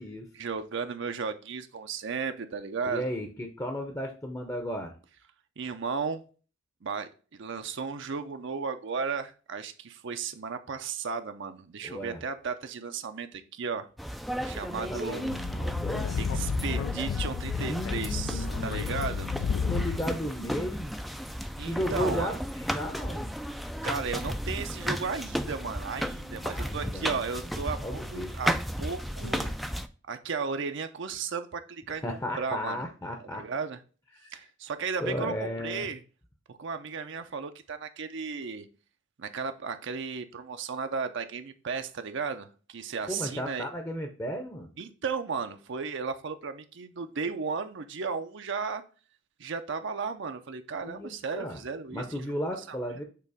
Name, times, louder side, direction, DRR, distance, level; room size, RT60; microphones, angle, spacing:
voice 1, 0.3-3.1 5.6-6.2 6.8-13.9 14.4-15.2 16.2-19.3 21.6-22.4 23.8-29.4 30.0-32.8 33.2-33.8 34.3-36.0 36.5-38.7 39.2-43.7 44.8-48.8 49.4-52.3 52.7-53.0, right 5 dB, 65° right, 8 dB, 0.6 m, -35 dB
voice 2, 2.9-4.9 11.8-12.2 14.9-16.1 17.7-18.5 19.7-21.0 21.7-23.3 26.3-27.2 27.8-28.3 29.4-29.5 32.0-33.5 34.2-34.4 35.0-35.9 43.1-44.7 50.8-51.6 51.9-53.0, equal, 15° left, 4 dB, 0.7 m, -34 dB
sound 1, 14.0-29.9, equal, ahead, 0.3 m, -34 dB
Speech / Wind, 15.3-20.2, left 6 dB, 85° left, 0.3 m, -32 dB
6.8 x 3.0 x 4.8 m, 0.37 s
head